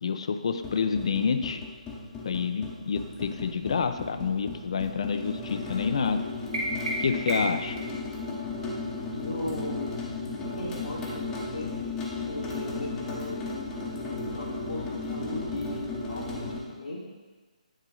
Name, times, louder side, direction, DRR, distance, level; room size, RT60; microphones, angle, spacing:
voice 1, 0.0-1.6 2.2-6.2 7.0-7.8, left 5 dB, 50° left, 9 dB, 0.5 m, -28 dB
sound 1, 0.6-16.6, left 3 dB, 10° left, 0.9 m, -35 dB
sound 2, 6.5-7.7, right 1 dB, 55° right, 1.5 m, -31 dB
voice 2, 9.1-10.0 10.4-11.7 12.3-13.4 13.9-14.8 15.1-17.1, left 1 dB, 75° left, -7 dB, 1.4 m, -37 dB
9.2 x 3.7 x 4.0 m, 1.3 s
figure-of-eight pair, 140°, 4 cm